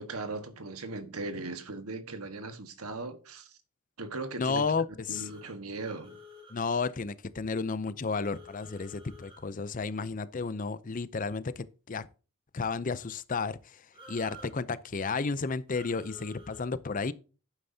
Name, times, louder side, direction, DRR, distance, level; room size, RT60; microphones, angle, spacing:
voice 1, 0.0-3.6 4.0-4.6 5.1-6.2, right 3 dB, 85° right, 1.5 m, -38 dB
voice 2, 4.4-5.3 6.5-12.1 12.5-13.8 14.1-17.1, left 4 dB, 40° left, 0.5 m, -32 dB
sound 1, 5.1-6.6 8.1-9.4 13.9-14.5 15.7-16.6, left 1 dB, 25° right, 3.2 m, -51 dB
11.5 x 9.0 x 2.8 m
head